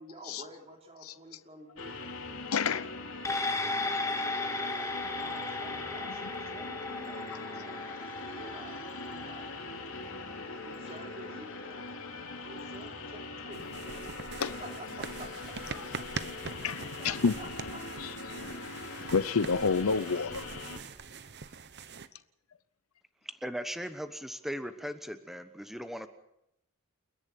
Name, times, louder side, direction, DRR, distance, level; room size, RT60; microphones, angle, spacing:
voice 1, 0.0-1.9 3.8-7.8 8.1-9.5 10.6-14.0 14.6-16.0 17.0-17.9 19.0-19.3, right 1 dB, 30° right, 3 dB, 3.1 m, -50 dB
sound 1, 1.8-20.8, left 3 dB, 70° left, 2.9 m, -42 dB
voice 2, 2.5-3.0 14.4-14.5 15.7-15.9 16.6-17.3 18.0-18.1 19.1-20.4, left 5 dB, 85° left, 15 dB, 0.7 m, -29 dB
sound 2, 3.2-11.9 12.3-12.4, left 2 dB, 15° left, 1.7 m, -36 dB
sound 3, 13.5-22.1, right 5 dB, 55° right, 1.0 m, -43 dB
voice 3, 23.4-26.1, equal, ahead, 10 dB, 1.1 m, -38 dB
29.0 x 11.0 x 8.4 m, 0.80 s
head